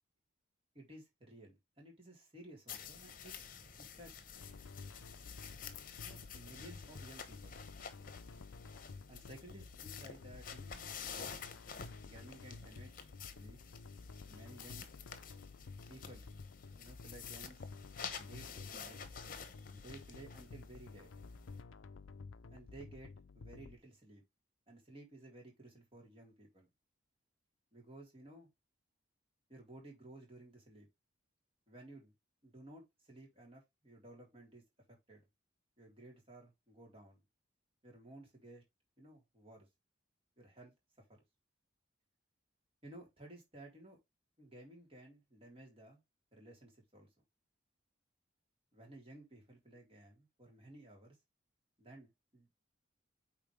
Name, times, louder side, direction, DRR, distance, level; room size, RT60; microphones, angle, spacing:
voice 1, 0.7-3.4 3.8-4.1 6.0-7.6 9.1-11.0 12.0-13.6 14.2-14.9 15.9-16.3 16.8-17.7 18.1-19.0 19.7-21.1 22.5-24.2 24.7-26.7 27.7-28.5 29.5-30.9 31.7-32.1 32.4-34.6 35.1-35.3 35.8-37.2 37.8-38.6 39.0-39.7 40.4-40.7 41.1-41.2 42.8-44.0 44.4-46.0 46.3-47.1 48.7-51.2 51.8-52.6, right 1 dB, 30° right, 3.9 m, -56 dB
sound 1, 2.7-21.6, left 7 dB, 45° left, 1.1 m, -50 dB
sound 2, 4.3-23.8, left 4 dB, 90° left, 0.5 m, -52 dB
8.9 x 4.5 x 3.3 m
head